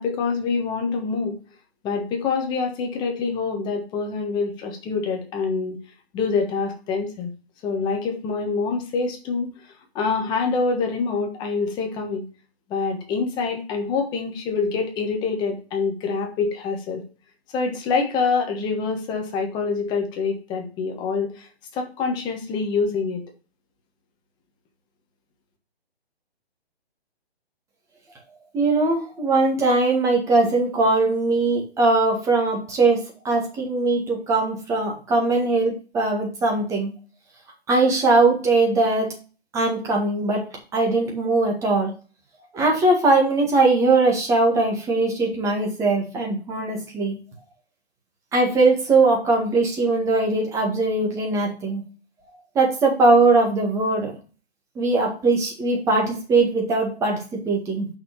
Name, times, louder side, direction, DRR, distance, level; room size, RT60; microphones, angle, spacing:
voice 1, 0.0-1.3 1.8-5.8 6.1-7.3 7.6-12.2 12.7-17.0 17.5-23.2, left 4 dB, 15° left, 3 dB, 1.3 m, -26 dB
voice 2, 28.5-36.9 37.7-39.1 39.5-40.5 40.7-41.9 42.5-47.2 48.3-51.8 52.6-54.1 54.8-57.9, right 3 dB, 10° right, 0 dB, 1.8 m, -20 dB
5.8 x 5.7 x 6.6 m, 0.35 s
hypercardioid pair, 150°, 32 cm